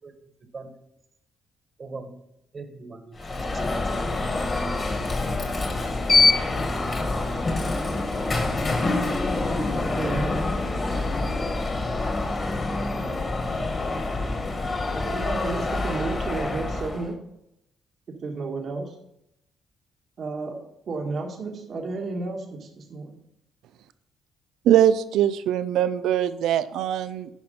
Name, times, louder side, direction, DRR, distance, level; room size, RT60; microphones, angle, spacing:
voice 1, 1.8-2.1 2.5-4.3, right 3 dB, 40° right, 7 dB, 1.6 m, -41 dB
Alarm, 3.2-17.1, left 2 dB, 35° left, 1.9 m, -26 dB
voice 2, 10.0-10.5 15.1-17.1 18.2-18.9 20.2-23.2, right 3 dB, 55° right, 1 dB, 1.7 m, -32 dB
voice 3, 24.6-27.3, right 10 dB, 85° right, 13 dB, 0.5 m, -22 dB
10.5 x 5.1 x 5.3 m, 0.81 s
cardioid pair, 90°, 0 cm